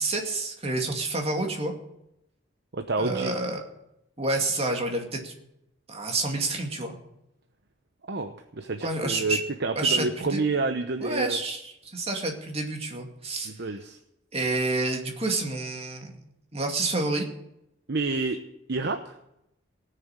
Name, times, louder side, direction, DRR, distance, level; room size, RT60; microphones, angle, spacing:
voice 1, 0.0-1.7 3.0-3.6 4.2-5.3 5.9-7.0 8.8-9.4 9.8-10.4 11.0-13.5 14.3-16.1 16.5-17.3, right 2 dB, 30° right, 2 dB, 2.3 m, -28 dB
voice 2, 2.7-3.3 8.1-11.4 13.5-14.0 17.9-18.4 18.7-19.1, right 3 dB, 60° right, 7 dB, 0.9 m, -29 dB
18.0 x 6.9 x 8.9 m, 0.84 s
head